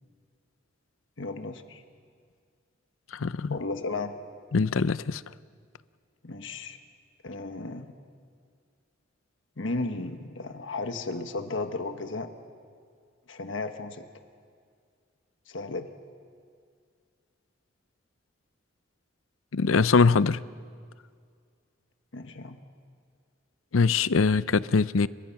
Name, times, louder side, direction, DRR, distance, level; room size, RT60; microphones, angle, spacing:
voice 1, 1.2-1.8 3.5-4.1 6.2-6.8 7.2-7.9 9.6-12.3 13.3-14.1 15.5-15.9 22.1-22.6, left 3 dB, 70° left, 1.4 m, -34 dB
voice 2, 3.1-3.6 4.5-5.2 19.5-20.4 23.7-25.1, left 4 dB, 90° left, 0.6 m, -22 dB
30.0 x 26.0 x 5.9 m
head